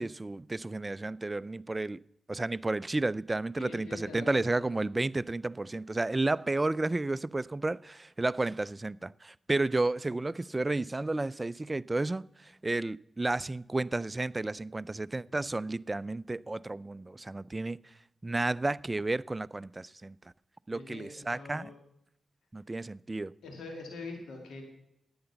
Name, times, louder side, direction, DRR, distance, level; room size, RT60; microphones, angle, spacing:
voice 1, 0.0-2.0 2.3-17.8 18.2-20.2 20.7-21.7 22.5-23.3, right 2 dB, 25° right, 0.3 m, -32 dB
voice 2, 3.6-4.7 20.7-21.7 23.4-24.6, left 3 dB, 85° left, 2.2 m, -44 dB
10.0 x 8.8 x 6.9 m
cardioid pair, 50°, 0 cm